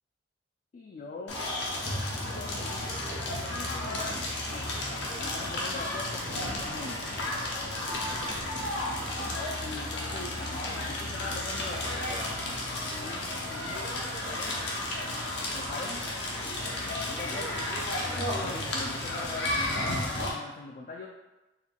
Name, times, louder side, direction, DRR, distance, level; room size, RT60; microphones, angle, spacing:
voice 1, 0.7-1.4 2.4-2.9 3.2-7.1 9.6-10.4 10.7-12.3 12.8-14.0 14.2-14.6 15.5-16.1 17.0-17.9 18.4-21.1, left 3 dB, 45° left, 0 dB, 0.3 m, -42 dB
Crackle, 1.3-20.3, left 1 dB, 65° left, 0.8 m, -33 dB
Thunder, 5.9-15.2 16.0-16.1 17.1-17.2 18.0-18.2, right 1 dB, 40° right, 0.5 m, -49 dB
4.3 x 2.2 x 3.7 m, 1.0 s
head